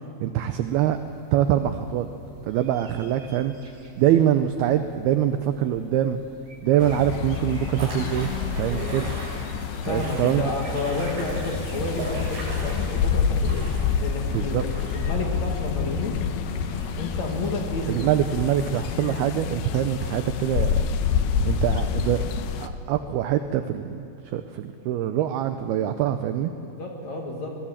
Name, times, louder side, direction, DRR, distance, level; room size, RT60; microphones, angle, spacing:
voice 1, 0.2-1.0 1.3-2.1 2.4-3.5 4.0-6.2 6.6-8.3 8.6-9.1 9.8-10.4 14.3-14.6 17.9-20.9 21.4-22.3 22.6-26.5, right 11 dB, 85° right, 8 dB, 2.2 m, -24 dB
sound 1, 0.7-12.8, right 3 dB, 35° right, 2.1 m, -50 dB
sound 2, 6.8-22.7, left 7 dB, 75° left, 2.5 m, -28 dB
sound 3, 7.8-18.8, right 1 dB, 65° right, 8.8 m, -38 dB
voice 2, 9.9-13.7 14.0-16.1 17.0-18.1 26.6-27.6, left 2 dB, 50° left, 0 dB, 2.4 m, -31 dB
24.0 x 19.5 x 7.3 m, 2.8 s
omnidirectional pair, 5.4 m